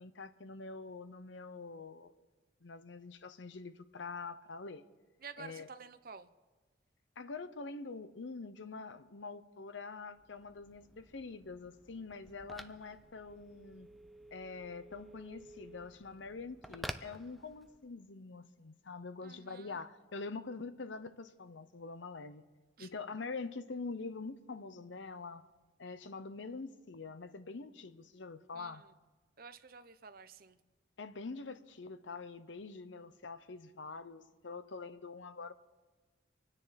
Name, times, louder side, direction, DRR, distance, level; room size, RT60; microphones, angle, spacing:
voice 1, 0.0-2.1 2.6-4.8 5.4-5.7 7.2-13.9 14.3-22.4 22.8-25.5 25.8-28.8 31.0-35.5, left 4 dB, 70° left, 12 dB, 0.8 m, -45 dB
voice 2, 5.2-6.3 19.2-19.8 22.8-22.9 28.5-28.8 29.4-30.6, right 5 dB, 50° right, 11 dB, 0.7 m, -51 dB
Telephone, 10.1-17.9, equal, ahead, 0.4 m, -51 dB
26.0 x 9.8 x 4.2 m, 1.3 s
head